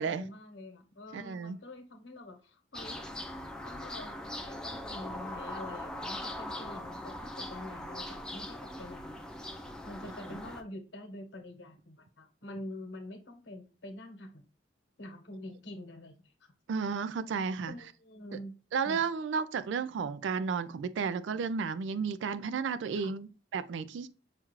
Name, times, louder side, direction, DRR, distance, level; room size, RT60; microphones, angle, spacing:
voice 1, 0.0-3.1 3.6-9.2 9.8-14.4 15.0-16.3 17.7-18.5 18.8-19.1 22.9-23.2, left 1 dB, 75° left, 1.1 m, -46 dB
voice 2, 1.1-1.6 10.3-10.4 16.7-17.7 18.7-24.1, right 5 dB, 80° right, 0.3 m, -33 dB
sound 1, 2.7-10.6, left 1 dB, 5° left, 0.4 m, -41 dB
5.7 x 2.4 x 3.0 m
head